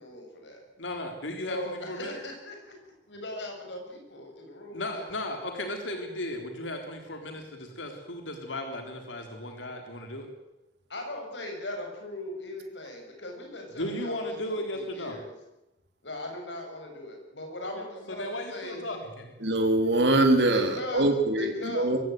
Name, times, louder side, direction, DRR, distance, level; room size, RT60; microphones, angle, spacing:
voice 1, 0.0-0.6 1.5-2.8 3.1-5.1 10.9-15.3 16.0-18.9 20.5-21.9, left 1 dB, 70° left, 3 dB, 7.2 m, -39 dB
voice 2, 0.8-2.2 4.7-10.3 13.8-15.2 17.8-19.4, left 1 dB, 90° left, 4 dB, 3.7 m, -35 dB
voice 3, 19.4-22.0, right 2 dB, 65° right, 5 dB, 3.3 m, -23 dB
23.5 x 15.5 x 9.3 m, 0.92 s
head